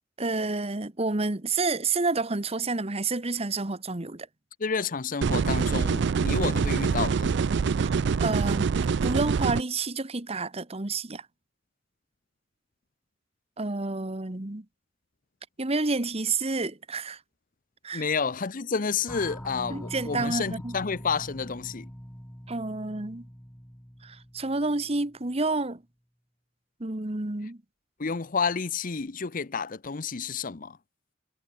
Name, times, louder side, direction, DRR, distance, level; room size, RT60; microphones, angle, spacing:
voice 1, 0.2-4.3 7.8-7.9 8.2-8.7 9.0-11.2 13.6-14.6 15.6-17.2 17.8-18.0 19.7-20.8 22.5-23.2 24.0-25.8 26.8-27.6, right 3 dB, 35° right, 1.4 m, -29 dB
voice 2, 4.6-7.3 17.9-21.9 28.0-30.8, left 5 dB, 45° left, 0.7 m, -30 dB
sound 1, 5.2-9.6, right 5 dB, 65° right, 0.4 m, -25 dB
sound 2, 19.1-25.4, equal, 5° left, 5.2 m, -43 dB
head